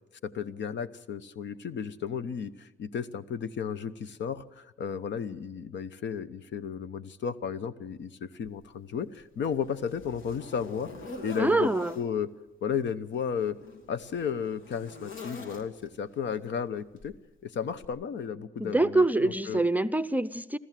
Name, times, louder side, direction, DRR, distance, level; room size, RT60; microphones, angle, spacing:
voice 1, 0.2-10.9 11.2-11.7 11.9-12.3 12.6-13.6 13.9-17.2 17.4-19.6, left 7 dB, 65° left, 1.0 m, -33 dB
Zipper (clothing), 8.4-8.6 9.1-12.1 13.0-16.0 17.0-17.2 17.8-17.9, left 2 dB, 80° left, 2.7 m, -45 dB
voice 2, 11.4-11.9 18.6-20.6, right 2 dB, 10° right, 0.6 m, -25 dB
26.5 x 14.0 x 7.6 m
cardioid pair, 90°, 20 cm